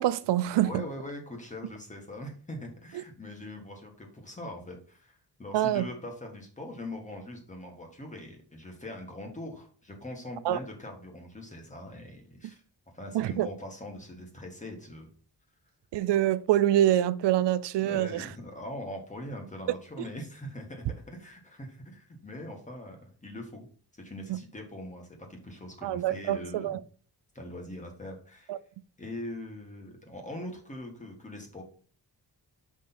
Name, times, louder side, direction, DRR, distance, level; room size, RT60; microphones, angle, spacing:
voice 1, 0.0-0.8 5.5-5.8 10.5-10.6 13.1-13.5 15.9-18.3 24.3-24.4 25.8-26.8 28.5-28.6, right 12 dB, 80° right, 0.6 m, -25 dB
voice 2, 0.6-12.6 12.9-15.1 17.7-23.7 23.9-26.8 27.3-28.5 29.0-31.6, left 1 dB, 20° left, 1.6 m, -42 dB
6.3 x 5.2 x 4.3 m
wide cardioid pair, 165°, 41 cm